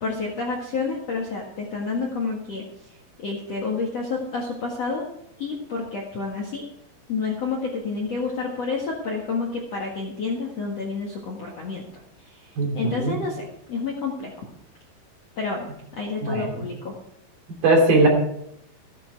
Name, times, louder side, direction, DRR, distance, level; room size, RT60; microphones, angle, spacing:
voice 1, 0.0-2.7 3.2-5.0 5.4-6.6 7.1-11.9 12.3-12.5 12.7-14.4 15.4-15.7 15.9-16.9, left 4 dB, 50° left, -1 dB, 2.0 m, -29 dB
voice 2, 12.6-13.2 16.2-16.5 17.6-18.1, right 2 dB, 55° right, 1 dB, 4.6 m, -19 dB
15.0 x 11.5 x 4.7 m, 0.75 s
omnidirectional pair, 5.3 m